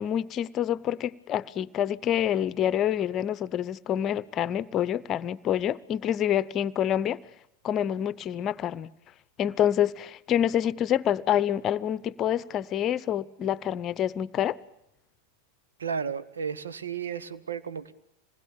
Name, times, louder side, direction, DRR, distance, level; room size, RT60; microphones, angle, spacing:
voice 1, 0.0-7.2 7.6-8.9 9.4-14.6, left 10 dB, 30° left, 0.9 m, -27 dB
voice 2, 15.8-17.9, right 6 dB, 70° right, 1.5 m, -33 dB
26.5 x 20.5 x 8.9 m
figure-of-eight pair, 90°, 0 cm